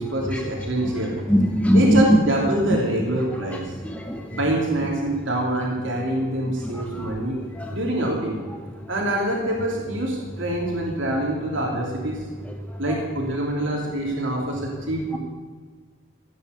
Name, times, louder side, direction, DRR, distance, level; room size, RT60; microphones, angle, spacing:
voice 1, 0.0-1.2 1.7-3.7 4.3-7.4 7.7-8.4 8.9-12.2 12.8-15.2, right 1 dB, 70° right, -1 dB, 3.1 m, -25 dB
voice 2, 1.1-2.0 3.5-4.4 6.6-7.1 7.5-7.8 12.9-13.0, equal, 5° left, 2 dB, 0.8 m, -22 dB
15.0 x 9.8 x 8.2 m, 1.5 s
head